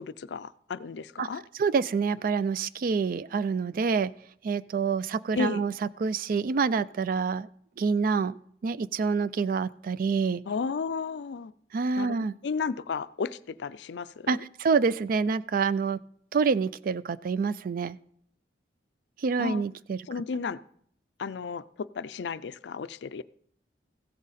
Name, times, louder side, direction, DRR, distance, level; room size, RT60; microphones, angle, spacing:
voice 1, 0.0-1.4 5.4-5.6 10.5-11.5 12.0-14.4 19.4-19.6 20.1-20.6 21.2-23.2, left 5 dB, 70° left, 0.4 m, -33 dB
voice 2, 1.6-4.1 4.4-5.7 6.0-7.5 7.8-8.4 8.6-10.4 11.7-12.3 14.3-16.0 16.3-18.0 19.2-20.0, right 5 dB, 50° right, 0.4 m, -27 dB
15.5 x 8.6 x 4.1 m
head